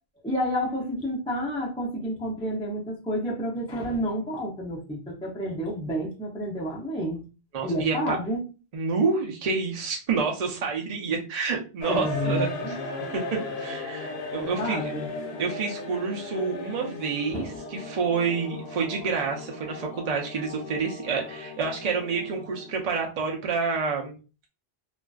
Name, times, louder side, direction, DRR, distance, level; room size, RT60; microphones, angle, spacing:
voice 1, 0.2-7.2 7.6-8.4 11.9-12.8 14.4-15.1 17.3-17.5, equal, 10° left, -4 dB, 0.3 m, -30 dB
voice 2, 7.5-8.2 8.7-12.8 13.1-14.9 15.4-24.2, right 5 dB, 50° right, 0 dB, 0.5 m, -28 dB
sound 1, 11.8-23.1, left 3 dB, 80° left, 0.9 m, -36 dB
2.4 x 2.2 x 2.2 m, 0.33 s
omnidirectional pair, 1.1 m